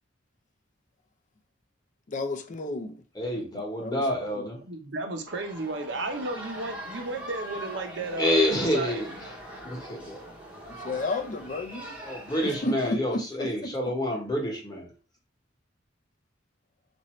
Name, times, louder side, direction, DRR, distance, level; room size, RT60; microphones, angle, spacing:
voice 1, 2.1-3.0 3.5-4.4 10.7-12.0 12.4-13.7, left 2 dB, 40° left, 0.4 m, -33 dB
voice 2, 3.1-4.6 8.2-9.3 9.6-10.2 12.0-14.9, left 1 dB, 20° left, 1.1 m, -28 dB
voice 3, 4.6-9.0, right 2 dB, 60° right, 0.7 m, -33 dB
sound 1, 5.3-12.9, right 1 dB, 5° right, 0.7 m, -42 dB
4.1 x 2.6 x 3.0 m
head